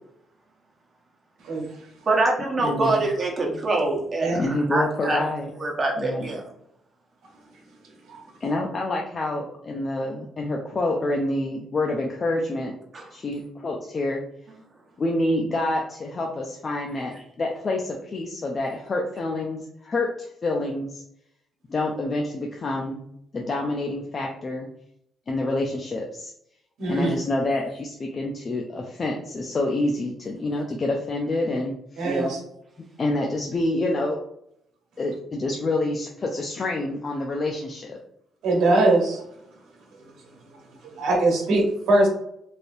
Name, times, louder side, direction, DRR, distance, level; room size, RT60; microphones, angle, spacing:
voice 1, 2.1-5.2 5.6-6.4 12.9-13.1 27.0-27.1 32.0-32.3, right 2 dB, 40° right, 0 dB, 1.0 m, -25 dB
voice 2, 2.6-3.0 4.3-5.5 6.0-6.3 8.4-12.7 13.1-14.2 15.0-21.0 21.7-23.0 23.3-24.7 25.3-26.3 26.9-32.1 33.0-34.2 35.0-38.0, left 2 dB, 40° left, 0 dB, 0.5 m, -27 dB
voice 3, 26.8-27.1 32.0-32.4 38.4-39.2 41.0-42.1, right 2 dB, 80° right, -1 dB, 1.1 m, -21 dB
3.3 x 2.6 x 2.6 m, 0.75 s
cardioid pair, 90°, 0 cm